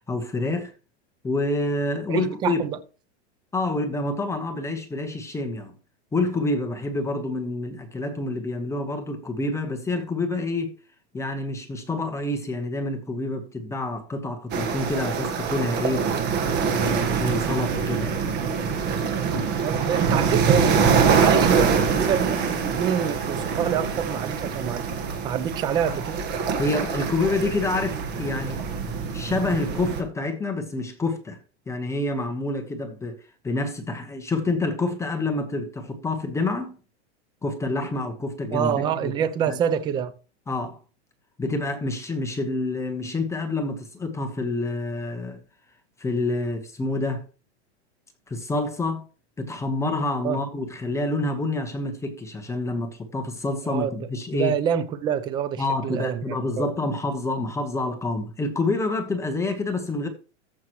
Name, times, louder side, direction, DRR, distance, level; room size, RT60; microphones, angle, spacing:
voice 1, 0.1-0.7 1.2-2.6 3.5-5.7 6.1-10.7 11.1-16.1 16.7-18.3 26.6-28.6 29.1-31.4 31.7-36.8 37.4-39.1 39.5-39.6 40.5-40.8 41.4-45.4 46.0-47.2 48.3-49.0 49.4-54.6 55.6-60.1, left 2 dB, 10° left, 1.1 m, -27 dB
voice 2, 2.1-2.8 19.6-24.8 25.2-26.2 38.5-40.1 50.2-50.4 53.6-53.9 54.3-56.7, right 8 dB, 15° right, 0.4 m, -26 dB
sound 1, 14.5-30.0, right 6 dB, 30° right, 1.4 m, -24 dB
14.0 x 6.0 x 3.1 m
supercardioid pair, 145°, 36 cm